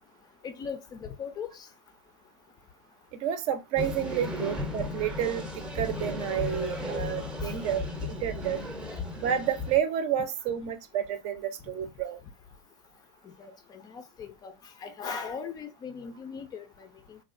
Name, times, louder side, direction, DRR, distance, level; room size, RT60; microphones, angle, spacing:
voice 1, 0.4-1.7 7.4-7.5 13.2-14.5 14.8-17.2, left 6 dB, 25° left, 0.4 m, -39 dB
voice 2, 3.1-8.6 9.1-12.2, right 9 dB, 45° right, 0.6 m, -30 dB
sound 1, 3.8-9.8, left 2 dB, 5° right, 0.7 m, -35 dB
3.2 x 2.3 x 2.5 m
hypercardioid pair, 110°, 15 cm